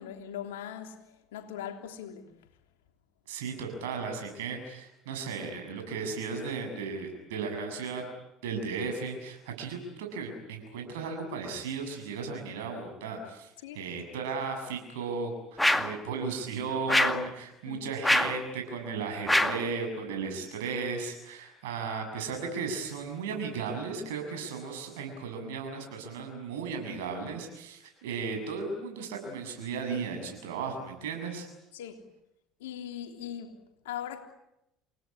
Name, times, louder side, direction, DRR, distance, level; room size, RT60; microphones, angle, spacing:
voice 1, 0.0-2.3 13.6-13.8 17.7-17.8 31.7-32.0 32.6-34.2, left 9 dB, 85° left, 3.3 m, -40 dB
voice 2, 3.3-8.1 8.4-13.5 13.7-31.5, right 5 dB, 80° right, 7.3 m, -35 dB
sound 1, 15.6-16.0 16.9-17.3 18.0-18.4 19.3-19.7, left 1 dB, 5° left, 2.1 m, -24 dB
28.5 x 18.5 x 10.0 m
hypercardioid pair, 70°, 0 cm